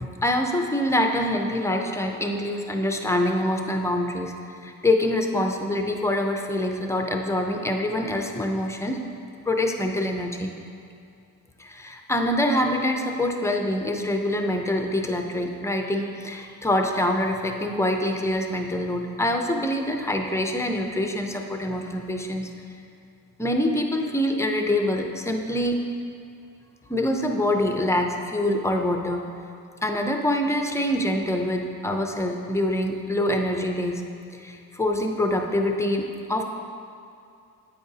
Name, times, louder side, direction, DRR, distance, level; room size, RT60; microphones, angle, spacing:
voice 1, 0.2-4.3 4.6-9.0 9.5-10.5 11.6-22.5 23.4-25.8 26.9-29.2 29.8-36.4, left 1 dB, 10° left, 3 dB, 0.4 m, -25 dB
9.5 x 8.7 x 2.7 m, 2.5 s
cardioid pair, 165°, 35 cm